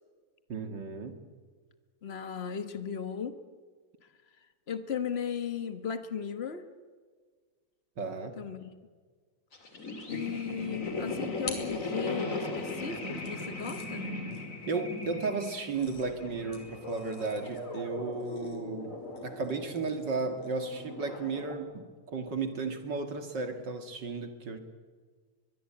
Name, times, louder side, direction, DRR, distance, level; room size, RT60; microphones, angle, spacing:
voice 1, 0.5-1.2 8.0-8.4 14.7-18.9 19.2-24.6, right 4 dB, 40° right, 7 dB, 2.2 m, -34 dB
voice 2, 2.0-3.4 4.7-6.6 8.4-8.7 10.1-14.1, left 7 dB, 50° left, 10 dB, 0.7 m, -36 dB
sound 1, 9.5-21.6, left 2 dB, 25° left, 3.0 m, -39 dB
sound 2, 11.5-12.5 13.2-20.8, left 4 dB, 65° left, 4.5 m, -49 dB
22.5 x 22.5 x 8.7 m, 1.6 s
omnidirectional pair, 3.3 m